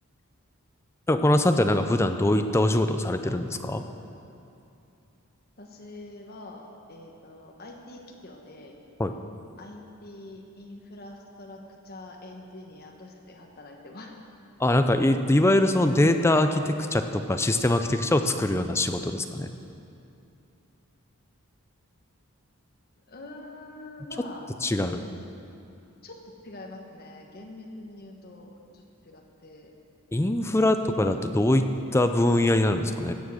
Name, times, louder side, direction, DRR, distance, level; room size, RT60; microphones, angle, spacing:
voice 1, 1.1-3.8 9.0-9.1 14.6-19.5 24.6-25.0 30.1-31.6 31.9-33.1, left 1 dB, 10° left, 7 dB, 0.4 m, -23 dB
voice 2, 5.6-8.8 9.6-14.2 23.1-24.5 26.0-29.8 30.4-30.6, left 2 dB, 45° left, 0 dB, 1.2 m, -45 dB
15.5 x 7.4 x 6.3 m, 2.7 s
head